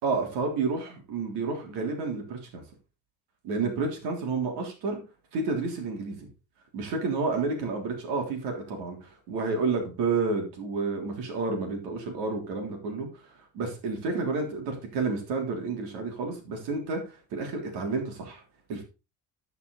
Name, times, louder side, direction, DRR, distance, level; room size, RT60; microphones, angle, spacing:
voice 1, 0.0-2.6 3.4-5.0 5.3-6.2 6.7-13.3 13.5-18.4 18.7-18.8, right 4 dB, 90° right, 2 dB, 3.5 m, -30 dB
12.0 x 5.9 x 4.0 m, 0.31 s
cardioid pair, 140°, 38 cm